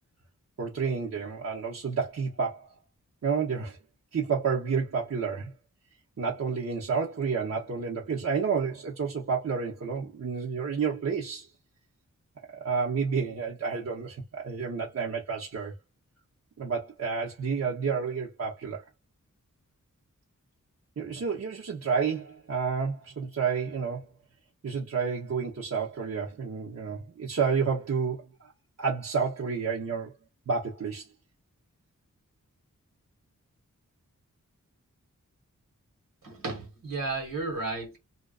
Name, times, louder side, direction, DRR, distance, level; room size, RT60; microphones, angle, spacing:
voice 1, 0.6-2.7 3.2-3.8 4.1-5.5 6.2-11.5 12.5-15.7 16.6-18.8 21.0-24.1 24.6-28.5 28.8-30.1 30.5-31.1, right 5 dB, 50° right, 0.7 m, -30 dB
voice 2, 36.2-38.0, right 3 dB, 80° right, 1.3 m, -33 dB
2.4 x 2.2 x 2.3 m
cardioid pair, 50°, 32 cm